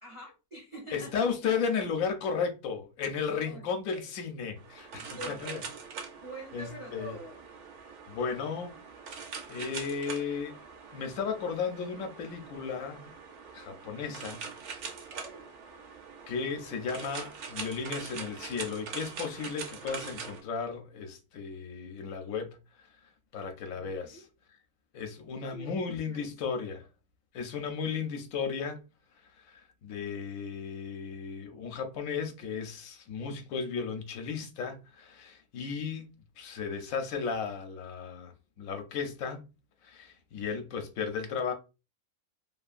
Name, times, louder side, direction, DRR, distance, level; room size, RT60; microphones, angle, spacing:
voice 1, 0.0-1.3 3.4-4.1 5.0-5.7 6.2-7.4 15.1-15.5 23.4-24.3 25.5-26.7, right 1 dB, 45° right, 0.4 m, -46 dB
voice 2, 0.9-5.6 6.5-7.2 8.1-8.8 9.5-10.6 10.9-13.1 13.5-14.5 16.3-22.6 23.3-24.3 24.9-26.8 27.3-28.8 29.4-36.1 36.4-39.4 39.8-41.5, left 6 dB, 75° left, 1.0 m, -34 dB
sound 1, 4.6-20.4, right 5 dB, 65° right, 0.9 m, -43 dB
2.7 x 2.5 x 2.4 m
omnidirectional pair, 1.5 m